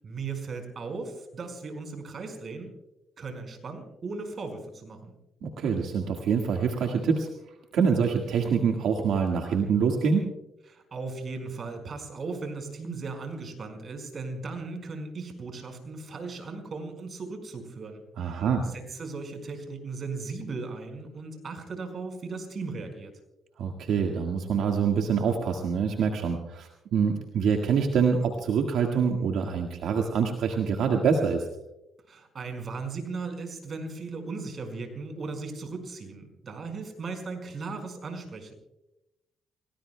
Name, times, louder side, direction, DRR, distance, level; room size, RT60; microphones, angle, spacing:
voice 1, 0.0-2.7 3.2-5.1 10.7-23.2 32.1-38.5, right 4 dB, 45° right, 5 dB, 4.9 m, -37 dB
voice 2, 5.4-7.3 7.7-10.3 18.2-18.7 23.6-31.5, right 6 dB, 75° right, 2 dB, 1.7 m, -25 dB
29.5 x 18.5 x 2.2 m, 0.93 s
cardioid pair, 90°, 0 cm